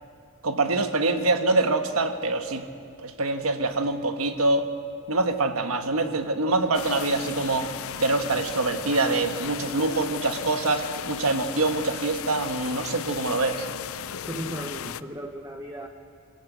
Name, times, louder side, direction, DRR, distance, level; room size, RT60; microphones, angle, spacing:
voice 1, 0.4-2.6 3.0-4.7 5.1-7.7 8.0-13.7, right 2 dB, 85° right, 7 dB, 1.4 m, -25 dB
sound 1, 6.7-15.0, left 9 dB, 75° left, 0.5 m, -36 dB
voice 2, 14.2-15.9, right 1 dB, 15° right, 3 dB, 1.0 m, -36 dB
24.5 x 16.5 x 8.3 m, 2.4 s
head